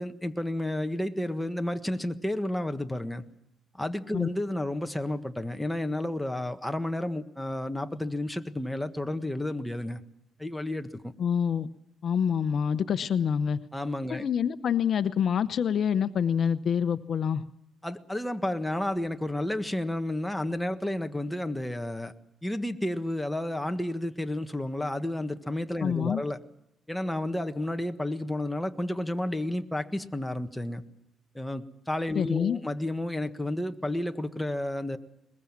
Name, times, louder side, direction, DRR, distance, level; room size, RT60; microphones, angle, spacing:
voice 1, 0.0-3.2 3.7-10.0 10.4-11.1 13.7-14.2 17.8-22.1 22.4-26.4 26.9-30.8 31.3-35.0, left 1 dB, 5° left, 7 dB, 1.5 m, -31 dB
voice 2, 11.2-11.7 12.0-13.6 14.1-17.4 25.8-26.2 32.1-32.6, left 7 dB, 60° left, 12 dB, 0.8 m, -26 dB
22.0 x 21.5 x 7.4 m, 0.79 s
cardioid pair, 90°, 0 cm